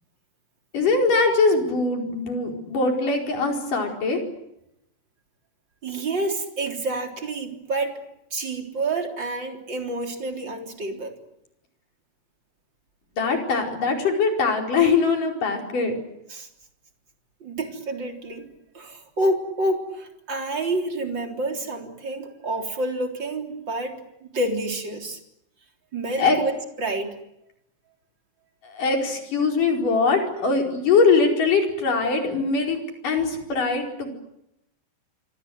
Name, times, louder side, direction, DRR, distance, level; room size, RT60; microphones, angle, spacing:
voice 1, 0.7-4.2 13.2-16.0 26.2-26.4 28.6-34.1, left 4 dB, 65° left, 2 dB, 6.3 m, -22 dB
voice 2, 5.8-8.0 8.3-11.1 16.3-16.5 17.4-25.2 25.9-26.5 26.8-27.2, right 2 dB, 30° right, 3 dB, 4.1 m, -28 dB
27.0 x 25.0 x 8.0 m, 0.81 s
omnidirectional pair, 4.0 m